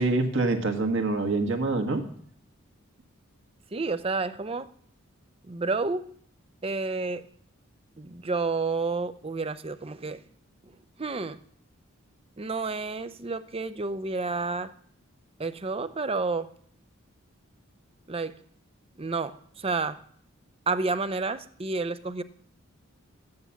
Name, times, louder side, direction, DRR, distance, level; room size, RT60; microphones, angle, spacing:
voice 1, 0.0-2.0, right 2 dB, 60° right, 5 dB, 1.6 m, -25 dB
voice 2, 3.7-4.7 5.5-6.1 6.6-7.2 8.0-10.2 11.0-11.4 12.4-14.7 15.4-16.5 18.1-18.3 19.0-19.4 19.6-20.0 20.7-22.2, right 3 dB, 25° right, 13 dB, 0.6 m, -30 dB
14.0 x 9.6 x 7.1 m, 0.62 s
head